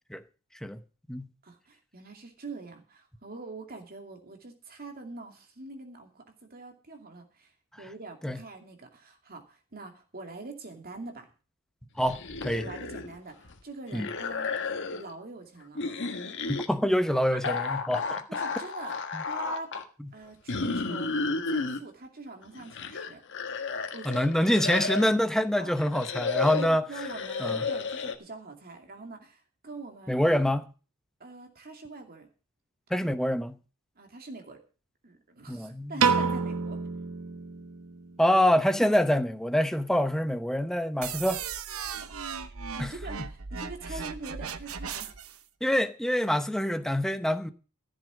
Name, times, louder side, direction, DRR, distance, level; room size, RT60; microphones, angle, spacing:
voice 1, 1.4-6.2 6.5-7.5 7.8-11.3 12.6-14.5 14.9-15.8 17.3-17.4 18.3-19.0 19.3-19.8 20.1-23.2 23.9-24.2 25.6-25.8 26.4-30.3 31.2-32.3 34.0-34.6 35.0-36.8 41.9-42.2 42.8-45.1, right 3 dB, 45° right, 2.5 m, -44 dB
sound 1, 12.0-13.2 13.4-15.1 15.7-16.7 17.4-19.8 20.5-21.8 22.4-25.2 25.8-28.2, left 4 dB, 55° left, 1.6 m, -32 dB
voice 2, 12.0-12.7 13.9-14.1 16.5-18.2 19.1-19.2 20.0-20.1 24.0-26.8 27.4-27.6 30.1-30.7 32.9-33.6 35.5-36.0 38.2-41.4 42.8-42.9 45.6-47.5, equal, ahead, 0.8 m, -26 dB
Piano, 36.0-38.3, right 5 dB, 90° right, 1.0 m, -28 dB
sound 2, 41.0-45.4, right 6 dB, 70° right, 0.9 m, -37 dB
14.5 x 7.9 x 6.2 m
head